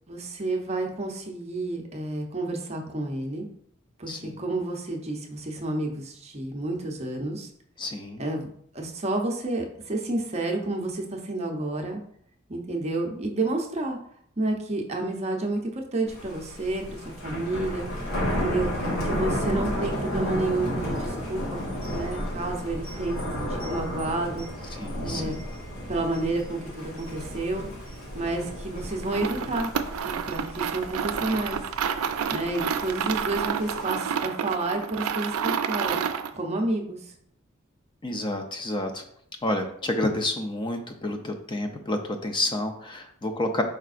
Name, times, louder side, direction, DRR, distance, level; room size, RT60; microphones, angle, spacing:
voice 1, 0.1-3.5 4.0-7.5 8.2-8.5 8.7-12.0 12.5-14.0 14.4-17.9 18.4-18.7 19.0-21.6 21.9-25.3 25.9-27.7 28.1-29.7 30.0-31.6 32.3-36.0 36.3-37.1, right 2 dB, 30° right, 2 dB, 0.7 m, -30 dB
voice 2, 4.1-4.4 7.8-8.2 24.8-25.4 38.0-39.0 39.4-43.6, left 1 dB, 20° left, 6 dB, 0.5 m, -29 dB
Thunder, 16.1-33.8, equal, 70° left, 1.4 m, -33 dB
sound 1, 29.0-36.4, right 7 dB, 90° right, 0.4 m, -29 dB
4.8 x 4.5 x 2.5 m, 0.67 s
head